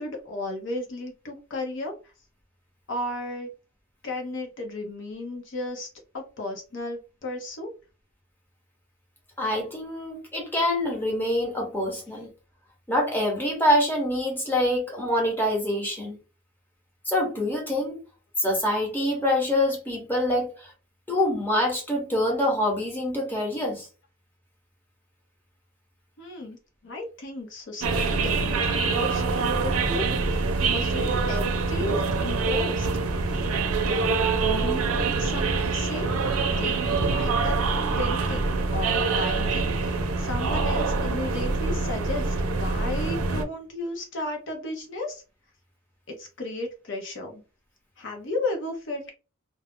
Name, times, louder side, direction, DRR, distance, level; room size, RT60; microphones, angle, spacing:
voice 1, 0.0-2.1 2.9-3.5 4.0-5.9 6.1-7.7 26.2-26.6 26.8-30.3 30.7-32.9 33.6-37.6 38.0-45.2 46.1-47.4 48.0-49.1, left 2 dB, 55° left, 0.6 m, -34 dB
voice 2, 9.4-12.3 12.9-16.2 17.0-18.0 18.4-20.7 21.1-23.9, left 1 dB, 10° left, 0.9 m, -25 dB
sound 1, 27.8-43.4, right 4 dB, 75° right, 0.5 m, -25 dB
2.3 x 2.0 x 3.5 m
head